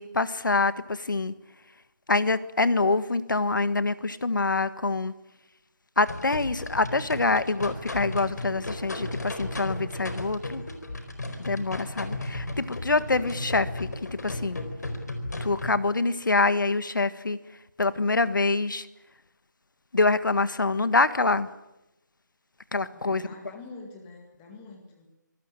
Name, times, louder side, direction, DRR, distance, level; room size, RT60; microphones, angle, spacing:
voice 1, 0.0-1.3 2.1-5.1 6.0-10.6 11.4-13.9 14.2-14.6 15.4-17.4 17.8-18.9 19.9-21.5 22.7-23.2, left 3 dB, 80° left, 13 dB, 1.6 m, -25 dB
sound 1, 6.1-15.8, left 1 dB, 60° left, 4.6 m, -35 dB
voice 2, 22.9-25.1, left 3 dB, 5° left, 2 dB, 1.9 m, -46 dB
25.5 x 19.0 x 8.9 m, 0.92 s
figure-of-eight pair, 180°, 10 cm